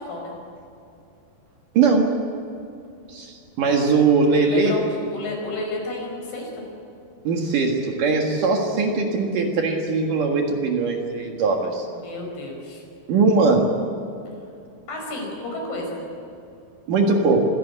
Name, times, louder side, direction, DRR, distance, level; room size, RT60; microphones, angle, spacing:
voice 1, 1.7-2.1 3.1-4.8 7.2-11.9 13.1-13.7 16.9-17.5, right 4 dB, 60° right, 2 dB, 2.9 m, -20 dB
voice 2, 4.4-6.6 11.9-12.8 14.9-16.0, left 2 dB, 65° left, 1 dB, 7.0 m, -31 dB
25.5 x 16.5 x 8.4 m, 2.6 s
omnidirectional pair, 4.9 m